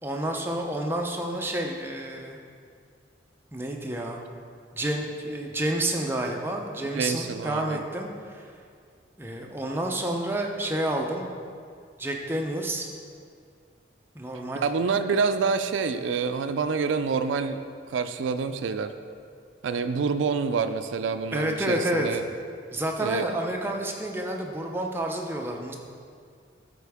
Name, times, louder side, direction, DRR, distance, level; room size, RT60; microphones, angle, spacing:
voice 1, 0.0-2.4 3.5-4.2 4.7-8.4 9.2-11.3 12.0-12.9 14.1-15.0 21.3-22.2 22.7-25.8, right 1 dB, 10° right, 1 dB, 0.5 m, -29 dB
voice 2, 6.9-7.8 14.6-19.0 19.6-22.2 23.0-23.3, right 5 dB, 80° right, 10 dB, 0.4 m, -27 dB
12.5 x 4.3 x 3.5 m, 2.2 s
head